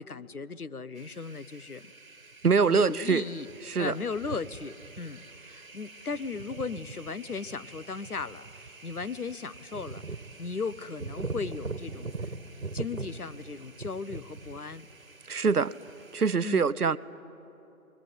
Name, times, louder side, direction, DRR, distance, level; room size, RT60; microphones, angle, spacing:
voice 1, 0.0-1.9 2.6-3.5 3.8-10.0 10.4-12.3 12.7-14.9 16.4-16.7, left 4 dB, 80° left, 15 dB, 1.0 m, -37 dB
sound 1, 1.0-16.3, right 3 dB, 65° right, 1.6 m, -43 dB
voice 2, 2.4-3.2 3.6-3.9 15.3-15.7 16.1-17.0, right 5 dB, 90° right, 16 dB, 0.9 m, -24 dB
26.5 x 21.5 x 9.6 m, 3.0 s
figure-of-eight pair, 175°, 44 cm